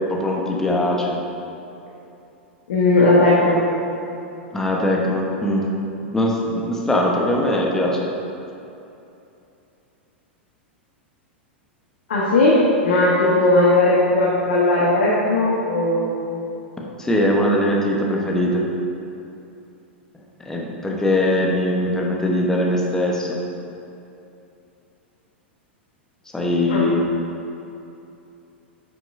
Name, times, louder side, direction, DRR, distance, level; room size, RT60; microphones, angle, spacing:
voice 1, 0.1-1.2 4.5-5.6 6.1-7.9 17.0-18.6 20.4-23.4 26.3-27.0, left 1 dB, 10° left, -2 dB, 1.1 m, -21 dB
voice 2, 2.7-3.6 12.1-16.4 26.7-26.8, left 2 dB, 60° left, -6 dB, 1.3 m, -17 dB
10.0 x 6.0 x 2.7 m, 2.8 s
figure-of-eight pair, 95°, 6 cm